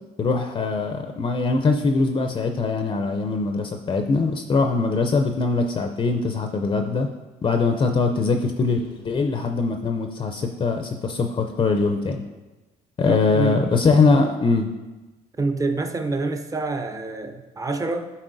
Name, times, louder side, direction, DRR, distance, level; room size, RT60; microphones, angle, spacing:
voice 1, 0.2-7.1 7.4-12.2 13.0-14.7, left 4 dB, 30° left, 4 dB, 0.5 m, -22 dB
voice 2, 13.0-13.8 15.4-18.1, right 3 dB, 20° right, 7 dB, 0.6 m, -27 dB
11.5 x 4.3 x 2.6 m, 1.1 s
cardioid pair, 110°, 17 cm